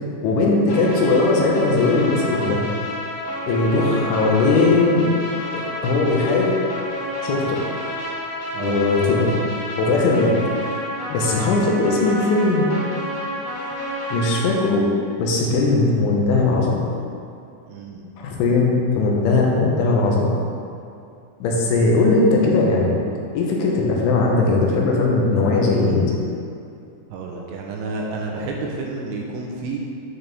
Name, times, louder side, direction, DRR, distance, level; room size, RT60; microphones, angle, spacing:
voice 1, 0.2-2.6 3.4-5.0 5.5-6.5 7.2-7.6 8.6-9.3 9.8-10.3 11.1-12.7 14.1-14.9 15.2-16.8 18.2-20.3 21.4-22.9 23.3-26.1, left 3 dB, 80° left, -2 dB, 3.4 m, -19 dB
sound 1, 0.7-14.4, left 1 dB, 55° left, 3.4 m, -30 dB
voice 2, 17.7-18.0 27.1-29.8, right 3 dB, 80° right, -1 dB, 3.1 m, -30 dB
13.0 x 4.3 x 3.5 m, 2.5 s
omnidirectional pair, 5.6 m